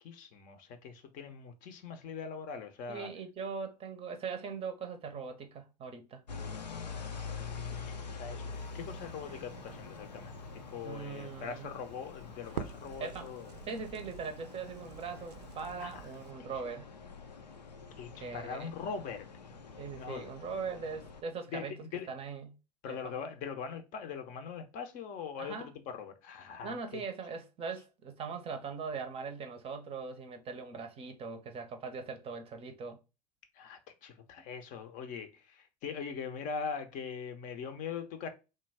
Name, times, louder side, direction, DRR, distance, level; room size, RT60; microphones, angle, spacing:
voice 1, 0.0-3.1 6.9-13.5 15.8-15.9 18.0-19.3 20.0-20.3 21.5-22.1 22.8-27.0 33.6-38.3, left 6 dB, 40° left, 0.6 m, -42 dB
voice 2, 2.9-6.2 10.8-11.7 13.0-13.3 13.6-16.9 18.2-18.7 19.8-22.6 22.9-23.1 25.4-25.7 26.6-33.0, right 5 dB, 25° right, 0.6 m, -41 dB
sound 1, 6.3-21.2, left 5 dB, 85° left, 0.5 m, -45 dB
Crackle, 8.5-16.3, right 8 dB, 70° right, 0.5 m, -49 dB
3.2 x 2.2 x 3.3 m
figure-of-eight pair, 80°, 21 cm